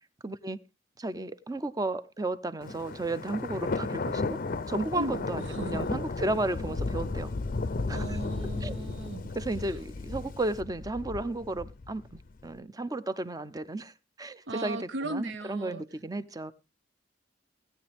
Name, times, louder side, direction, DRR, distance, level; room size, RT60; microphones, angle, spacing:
voice 1, 0.2-0.6 1.0-4.4 4.7-7.3 7.9-8.2 8.6-8.8 9.3-16.5, right 2 dB, 20° right, 0.6 m, -33 dB
Thunder, 2.6-12.5, left 3 dB, 45° left, 0.5 m, -34 dB
voice 2, 4.9-6.0 7.9-9.3 14.5-15.9, right 2 dB, 65° right, 0.6 m, -37 dB
17.0 x 9.6 x 3.5 m
head